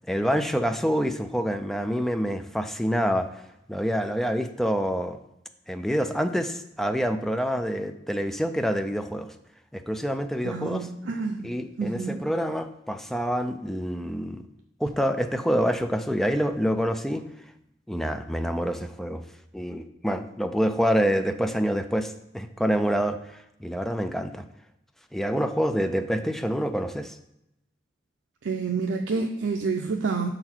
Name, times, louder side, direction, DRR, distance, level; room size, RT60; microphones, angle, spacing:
voice 1, 0.1-3.3 3.7-5.2 5.7-9.3 9.7-10.9 11.4-14.4 14.8-17.3 17.9-19.2 19.5-24.4 25.1-27.2, equal, ahead, 8 dB, 0.3 m, -27 dB
voice 2, 10.4-11.5 11.8-12.2 28.4-30.3, right 4 dB, 90° right, 2 dB, 0.5 m, -28 dB
6.3 x 4.0 x 4.4 m, 0.83 s
head